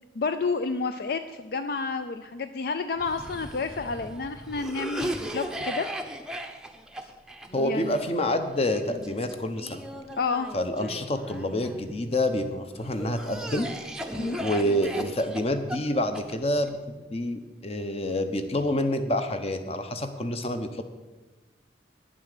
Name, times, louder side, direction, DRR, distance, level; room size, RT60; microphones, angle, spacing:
voice 1, 0.1-5.9 7.5-8.0 10.2-10.5 14.2-14.4, left 4 dB, 60° left, 9 dB, 0.4 m, -30 dB
Cough, 3.0-12.2 12.8-16.7, right 1 dB, 5° right, 0.7 m, -38 dB
voice 2, 7.5-9.8 10.5-13.7 14.4-20.8, left 1 dB, 35° left, 8 dB, 0.8 m, -28 dB
9.9 x 7.5 x 6.7 m, 1.2 s
head